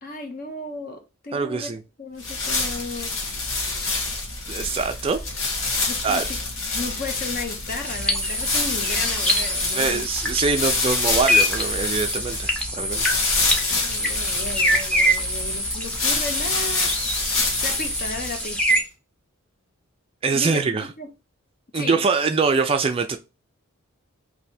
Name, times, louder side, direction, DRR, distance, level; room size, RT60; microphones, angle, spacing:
voice 1, 0.0-1.7 2.0-3.2 5.8-10.1 13.7-16.9 17.2-18.8 20.3-20.6 21.0-21.1 21.7-22.0, left 2 dB, 40° left, 0.9 m, -34 dB
voice 2, 1.3-1.8 4.5-5.2 6.0-6.2 9.7-13.0 20.2-20.9 21.7-23.2, right 4 dB, 25° right, 0.3 m, -23 dB
sound 1, 2.2-18.7, left 3 dB, 65° left, 1.1 m, -27 dB
sound 2, 7.8-18.8, equal, 5° left, 0.7 m, -25 dB
3.3 x 2.7 x 4.1 m
head